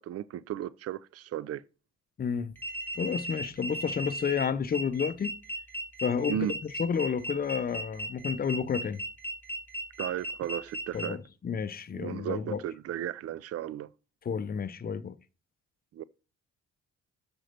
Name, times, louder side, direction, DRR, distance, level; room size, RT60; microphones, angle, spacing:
voice 1, 0.0-1.6 6.3-6.5 10.0-11.2 11.9-13.9 15.9-16.0, right 11 dB, 55° right, 0.5 m, -35 dB
voice 2, 2.2-2.5 3.0-5.3 6.0-6.4 6.8-9.0 10.9-12.6 14.3-15.2, left 6 dB, 30° left, 0.6 m, -30 dB
sound 1, 2.6-11.1, right 1 dB, 5° left, 1.9 m, -36 dB
6.3 x 4.4 x 6.5 m
cardioid pair, 90°, 30 cm